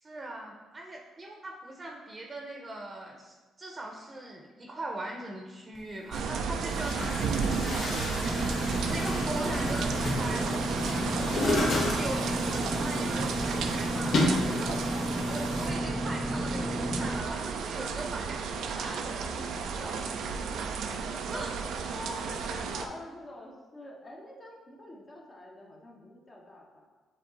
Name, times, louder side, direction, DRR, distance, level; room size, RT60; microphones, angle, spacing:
voice 1, 0.0-8.4 8.9-9.9 10.2-11.4 11.7-14.2 14.5-14.8 15.2-19.5 19.8-20.7 21.3-21.6, right 2 dB, 30° right, 1 dB, 0.8 m, -40 dB
Chatter / Gurgling / Tap, 5.8-5.9 6.6-15.7, left 2 dB, 60° left, 1.1 m, -33 dB
sound 1, 6.1-22.9, right 5 dB, 75° right, 0.5 m, -33 dB
Engine / Mechanisms, 8.3-17.2, equal, 5° right, 0.5 m, -33 dB
voice 2, 21.0-26.9, left 1 dB, 35° left, -2 dB, 1.1 m, -46 dB
7.8 x 3.1 x 4.0 m, 1.3 s
cardioid pair, 90°, 0 cm